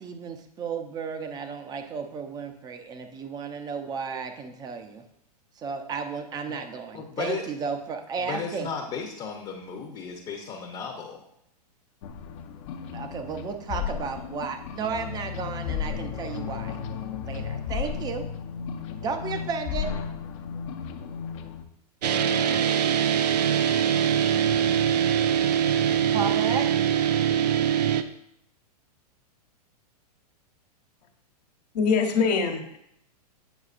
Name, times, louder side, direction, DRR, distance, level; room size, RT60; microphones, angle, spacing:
voice 1, 0.0-5.0 5.6-8.7 12.9-16.8 17.2-18.2 19.0-19.9 26.1-26.7, right 5 dB, 20° right, 7 dB, 0.6 m, -33 dB
voice 2, 6.9-7.5 8.2-11.2, left 5 dB, 25° left, 1 dB, 0.8 m, -35 dB
sound 1, 12.0-21.6, left 7 dB, 55° left, 0.7 m, -34 dB
sound 2, 22.0-28.0, right 8 dB, 85° right, 0.5 m, -23 dB
voice 3, 31.7-32.8, left 5 dB, 80° left, 0 dB, 1.2 m, -23 dB
8.1 x 4.7 x 2.5 m, 0.76 s
hypercardioid pair, 130°, 21 cm